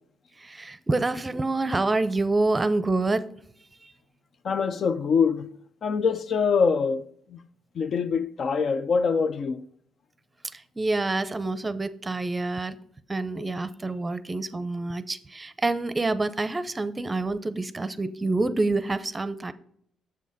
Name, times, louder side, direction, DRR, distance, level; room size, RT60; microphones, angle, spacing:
voice 1, 0.4-3.2 3.8-3.9 10.5-12.8 13.1-19.5, right 2 dB, 20° right, 0.6 m, -27 dB
voice 2, 4.4-5.5 5.8-7.5 7.7-9.7, left 5 dB, 55° left, 0.5 m, -24 dB
7.3 x 6.3 x 4.0 m
cardioid pair, 90°, 0 cm